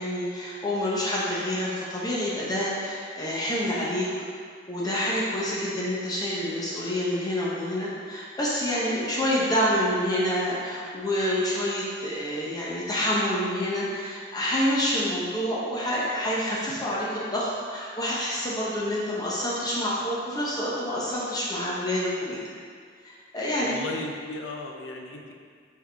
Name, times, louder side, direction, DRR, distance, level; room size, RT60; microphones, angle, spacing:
voice 1, 0.0-4.1 4.7-22.4 23.0-23.8, equal, 20° left, -6 dB, 0.9 m, -27 dB
voice 2, 23.6-25.4, left 2 dB, 90° left, 1 dB, 0.6 m, -36 dB
6.2 x 4.7 x 3.5 m, 2.1 s
head